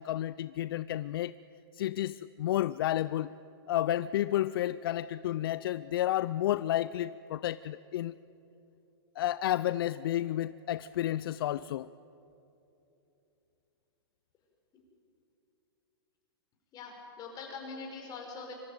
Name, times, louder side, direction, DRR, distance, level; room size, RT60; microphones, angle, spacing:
voice 1, 0.0-1.3 1.7-3.3 3.7-8.1 9.2-11.9, left 13 dB, 65° left, 17 dB, 0.4 m, -31 dB
voice 2, 16.7-18.5, left 4 dB, 30° left, 1 dB, 5.4 m, -43 dB
24.5 x 14.0 x 9.3 m, 2.9 s
hypercardioid pair, 130°, 13 cm